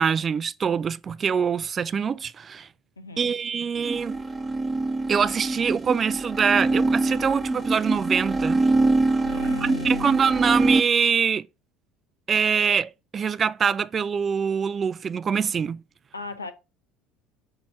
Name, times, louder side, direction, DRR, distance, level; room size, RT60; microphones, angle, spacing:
voice 1, 0.0-2.7 3.2-4.2 5.1-8.7 9.6-11.5 12.3-15.8, right 6 dB, 30° right, 0.3 m, -24 dB
voice 2, 3.0-3.3 9.2-10.2 16.1-16.5, left 3 dB, 85° left, 0.7 m, -36 dB
sound 1, 3.8-10.8, right 2 dB, 15° right, 0.8 m, -24 dB
6.2 x 3.0 x 5.5 m
figure-of-eight pair, 65°, 0 cm